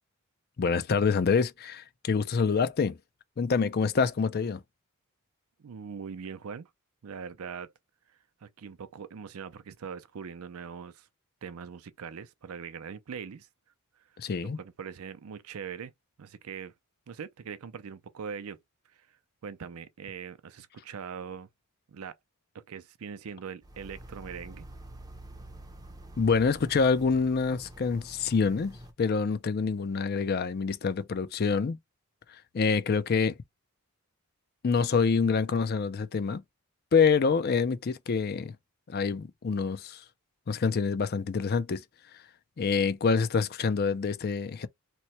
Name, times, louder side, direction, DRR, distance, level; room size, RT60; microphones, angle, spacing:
voice 1, 0.6-3.0 3.4-4.6 14.2-14.6 26.2-31.8 32.5-33.4 34.6-36.4 36.9-38.6 38.9-40.0 40.5-41.8 42.6-44.7, left 5 dB, 45° left, 0.4 m, -26 dB
voice 2, 5.6-6.7 7.0-7.7 8.4-11.1 11.4-13.5 14.4-15.9 16.2-16.7 17.1-18.6 18.9-19.0 19.4-21.5 21.9-22.2 22.5-24.7, right 6 dB, 75° right, 0.5 m, -41 dB
sound 1, 23.6-28.9, right 1 dB, 15° right, 0.5 m, -47 dB
2.9 x 2.1 x 4.1 m
head